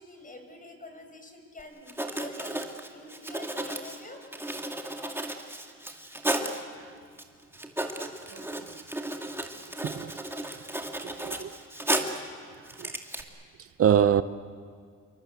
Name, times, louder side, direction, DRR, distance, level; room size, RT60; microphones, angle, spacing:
voice 1, 0.0-2.6 2.9-4.2, left 2 dB, 25° left, 5.3 m, -46 dB
Writing, 1.6-1.7 1.9-6.6 7.2-7.3 7.5-12.3 12.7-13.2, right 1 dB, 10° right, 2.4 m, -34 dB
voice 2, 8.3-8.8 9.8-10.1 10.5-10.6 11.0-11.5 11.9-12.2 12.8-12.9 13.6-14.2, right 9 dB, 50° right, 0.8 m, -26 dB
28.0 x 23.0 x 8.1 m
cardioid pair, 90°, 30 cm